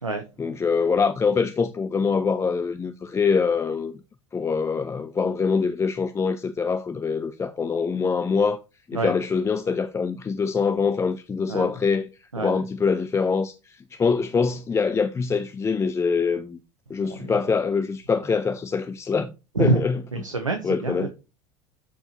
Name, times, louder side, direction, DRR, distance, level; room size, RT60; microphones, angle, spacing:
voice 1, 0.4-3.9 4.3-8.6 8.9-16.6 16.9-19.3 19.6-20.0 20.6-21.1, left 5 dB, 15° left, 0.5 m, -24 dB
voice 2, 17.0-17.3 19.5-19.8 20.1-21.1, right 3 dB, 85° right, 0.8 m, -27 dB
13.0 x 4.5 x 2.9 m
figure-of-eight pair, 75°, 16 cm